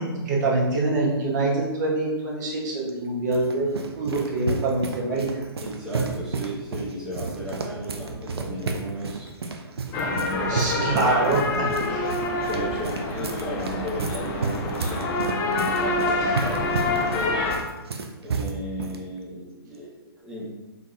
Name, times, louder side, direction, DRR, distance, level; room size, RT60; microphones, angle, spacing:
voice 1, 0.0-5.3 10.4-11.7 11.9-12.1, right 2 dB, 45° right, -3 dB, 1.0 m, -25 dB
sound 1, 2.9-19.0, right 4 dB, 75° right, 0.4 m, -32 dB
voice 2, 5.6-9.3 9.9-11.3 11.6-11.8 12.5-17.5 18.2-20.4, right 1 dB, 5° right, -8 dB, 0.9 m, -34 dB
sound 2, 9.9-17.6, left 3 dB, 20° left, 0.4 m, -27 dB
3.7 x 2.9 x 2.5 m, 1.1 s
figure-of-eight pair, 125°, 13 cm